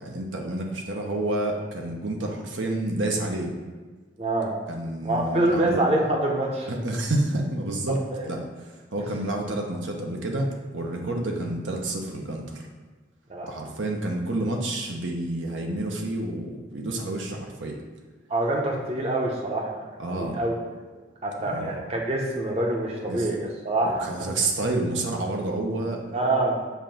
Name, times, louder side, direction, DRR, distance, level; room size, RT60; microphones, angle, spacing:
voice 1, 0.0-3.5 4.7-5.8 6.7-8.4 8.9-12.6 13.4-17.8 20.0-20.4 21.5-21.8 23.1-23.3 23.8-26.0, right 2 dB, 85° right, 1 dB, 0.9 m, -29 dB
voice 2, 4.2-4.5 5.0-6.7 8.1-8.3 13.3-13.5 18.3-19.8 20.2-20.5 21.2-24.3 26.1-26.6, right 2 dB, 35° right, -1 dB, 0.7 m, -25 dB
7.1 x 2.6 x 5.7 m, 1.4 s
head